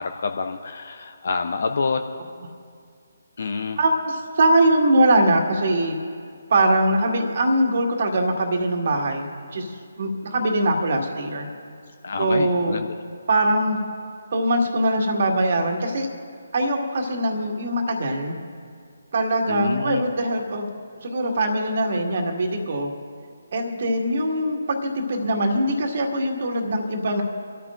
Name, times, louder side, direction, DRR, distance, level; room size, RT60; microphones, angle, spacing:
voice 1, 0.0-2.0 3.4-3.8 12.0-12.9 19.5-20.0, left 4 dB, 55° left, 6 dB, 0.7 m, -27 dB
voice 2, 3.8-6.0 6.5-9.3 9.5-11.5 12.2-12.8 13.3-13.8 14.3-16.1 16.5-18.4 19.1-20.7 21.0-22.9 23.5-27.2, right 1 dB, 50° right, 2 dB, 1.9 m, -22 dB
26.5 x 13.5 x 2.6 m, 2.3 s
figure-of-eight pair, 145°, 0 cm